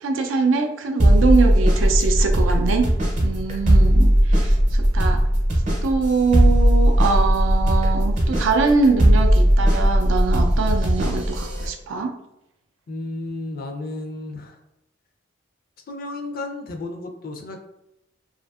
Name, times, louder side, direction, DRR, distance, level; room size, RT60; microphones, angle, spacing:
voice 1, 0.0-2.8 3.2-5.2 5.8-12.1, right 4 dB, 80° right, 4 dB, 0.4 m, -23 dB
sound 1, 1.0-11.7, equal, 40° right, 0.7 m, -18 dB
voice 2, 12.9-14.6 15.9-17.6, left 2 dB, 50° left, 4 dB, 0.4 m, -33 dB
2.6 x 2.4 x 2.3 m, 0.86 s
head